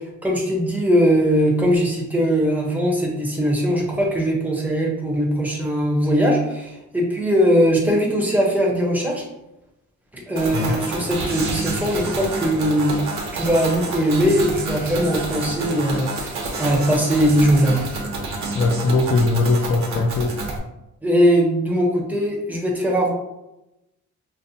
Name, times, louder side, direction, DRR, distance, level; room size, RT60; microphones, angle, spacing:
voice 1, 0.0-9.2 10.3-17.8 21.0-23.1, equal, 5° right, -2 dB, 0.7 m, -20 dB
sound 1, 10.4-20.6, right 3 dB, 60° right, 0.8 m, -29 dB
voice 2, 18.5-20.3, left 3 dB, 40° left, -1 dB, 0.4 m, -20 dB
5.5 x 2.1 x 2.6 m, 0.92 s
wide cardioid pair, 170°, 32 cm